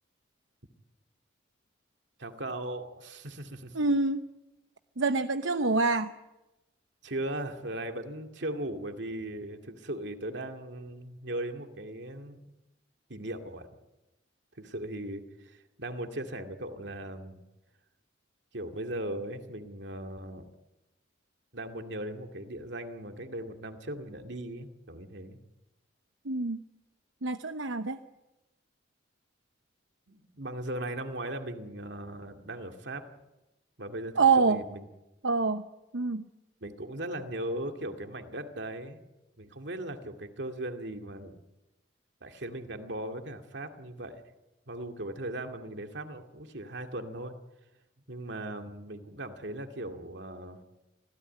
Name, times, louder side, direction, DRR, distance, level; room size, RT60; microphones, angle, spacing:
voice 1, 2.2-3.8 7.0-12.4 13.1-13.7 14.5-17.4 18.5-20.5 21.5-25.4 30.1-33.1 33.8-34.9 36.6-39.0 39.4-41.4 42.2-44.2 44.7-47.3 48.1-50.6, right 1 dB, 65° right, 5 dB, 2.4 m, -38 dB
voice 2, 3.7-4.2 5.0-6.1 26.2-26.6 27.2-28.0 34.2-34.6 35.2-35.7 35.9-36.3, right 4 dB, 85° right, 9 dB, 0.9 m, -26 dB
26.0 x 17.0 x 9.4 m, 1.0 s
head